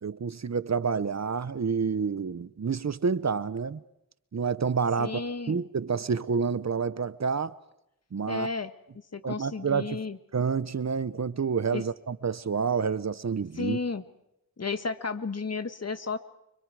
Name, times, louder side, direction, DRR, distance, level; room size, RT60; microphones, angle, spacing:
voice 1, 0.0-3.8 4.3-5.2 5.5-7.5 8.1-8.5 9.2-10.0 10.3-13.8, right 5 dB, 55° right, 0.9 m, -28 dB
voice 2, 5.0-5.6 8.3-8.7 9.1-10.2 11.7-11.8 13.5-14.0 14.6-16.2, left 4 dB, 50° left, 1.6 m, -32 dB
30.0 x 25.5 x 4.9 m
wide cardioid pair, 65°, 33 cm